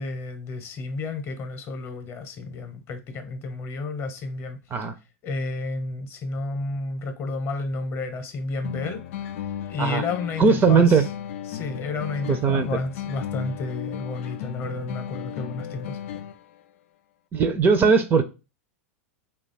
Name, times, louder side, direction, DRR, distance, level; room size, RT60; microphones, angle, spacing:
voice 1, 0.0-4.6 5.2-9.0 9.7-11.0 11.5-16.0, left 3 dB, 35° left, 0.8 m, -31 dB
sound 1, 8.6-16.6, left 10 dB, 65° left, 0.4 m, -35 dB
voice 2, 10.4-11.0 12.3-12.7 17.3-18.2, right 5 dB, 25° right, 0.5 m, -19 dB
2.9 x 2.3 x 4.1 m
hypercardioid pair, 95°, 8 cm